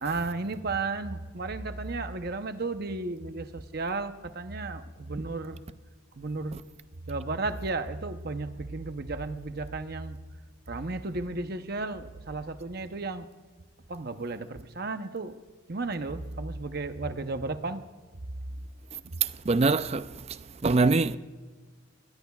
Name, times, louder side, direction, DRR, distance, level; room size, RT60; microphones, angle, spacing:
voice 1, 0.0-5.6 6.2-6.6 7.1-10.2 10.7-13.3 13.9-15.4 15.7-17.8, right 3 dB, 45° right, 0.8 m, -33 dB
voice 2, 19.2-20.1 20.6-21.2, right 3 dB, 30° right, 0.4 m, -23 dB
22.0 x 18.5 x 2.4 m
head